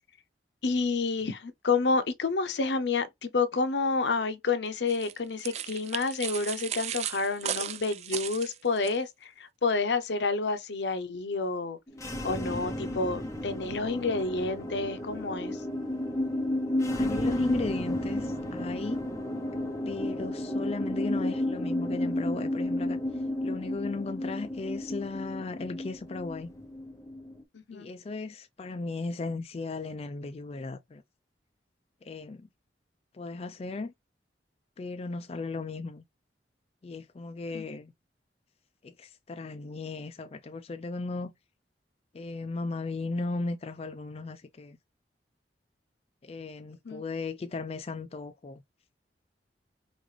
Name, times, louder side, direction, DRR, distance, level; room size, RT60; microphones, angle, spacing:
voice 1, 0.6-11.8 12.2-15.6 27.5-27.9 37.5-37.6 46.8-47.0, left 4 dB, 75° left, 0.7 m, -29 dB
sound 1, 4.9-9.0, right 10 dB, 40° right, 0.3 m, -36 dB
sound 2, 11.9-27.4, left 1 dB, 20° left, 0.9 m, -32 dB
voice 2, 17.0-19.0 19.9-23.0 23.4-26.5 27.7-31.0 32.0-32.5 33.1-33.9 34.8-36.0 36.8-37.9 38.8-41.3 42.1-44.8 46.2-48.6, left 3 dB, 35° left, 0.4 m, -36 dB
5.2 x 2.5 x 3.2 m
head